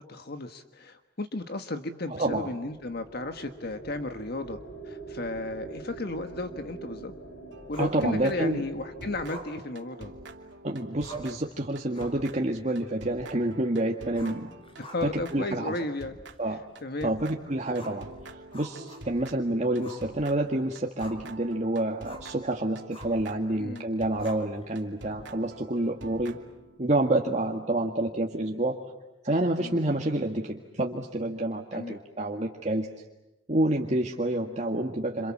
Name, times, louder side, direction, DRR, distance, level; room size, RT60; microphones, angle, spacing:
voice 1, 0.0-4.6 4.8-7.1 7.7-10.1 14.2-14.3 14.8-16.2 16.5-17.1 23.6-23.9 29.6-29.8 31.7-32.0, left 2 dB, 60° left, 7 dB, 1.5 m, -34 dB
voice 2, 2.1-2.5 7.8-8.6 10.6-14.5 15.0-15.7 16.4-16.6 17.0-26.4 26.8-28.9 29.2-32.9 33.5-35.3, right 1 dB, 40° right, 1 dB, 1.8 m, -28 dB
sound 1, 2.3-9.4, right 3 dB, 80° left, 6.1 m, -44 dB
sound 2, 7.5-8.7 9.0-26.8, right 2 dB, 80° right, 2.8 m, -47 dB
Growling, 7.7-8.5 9.2-10.5 10.8-10.9 11.0-11.4 11.8-12.3 12.6-12.7 14.1-15.3 15.6-15.7 16.3-16.4 17.7-19.3 19.8-20.1 20.4-21.4 22.0-22.3 22.9-23.3 24.2-24.8, right 1 dB, 30° left, 4.1 m, -46 dB
29.0 x 27.5 x 7.3 m, 0.97 s
head